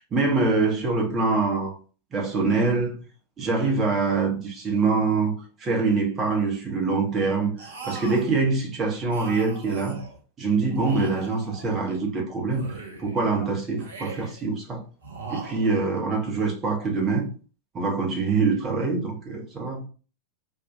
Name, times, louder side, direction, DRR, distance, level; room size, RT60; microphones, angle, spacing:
voice 1, 0.0-1.8 2.1-3.0 3.4-5.3 5.6-10.0 10.4-12.6 13.0-14.8 15.3-17.3 17.7-19.8, right 4 dB, 25° right, 0.8 m, -24 dB
sound 1, 7.6-8.4 9.1-10.2 10.7-12.1 12.5-13.3 13.8-14.5 15.0-16.0, right 4 dB, 70° right, 0.7 m, -40 dB
2.6 x 2.3 x 2.5 m
figure-of-eight pair, 90°, 0 cm